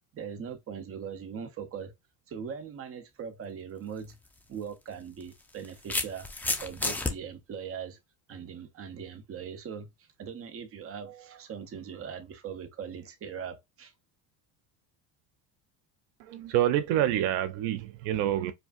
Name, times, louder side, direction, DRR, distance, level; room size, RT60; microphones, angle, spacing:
voice 1, 0.1-1.9 2.3-4.2 4.5-6.3 6.6-8.0 8.3-13.9, right 7 dB, 30° right, 0.8 m, -40 dB
sound 1, 3.9-4.1 5.2-7.1, left 2 dB, 5° left, 0.4 m, -31 dB
voice 2, 16.2-18.5, right 12 dB, 70° right, 0.5 m, -27 dB
4.9 x 2.2 x 2.5 m
supercardioid pair, 115°, 43 cm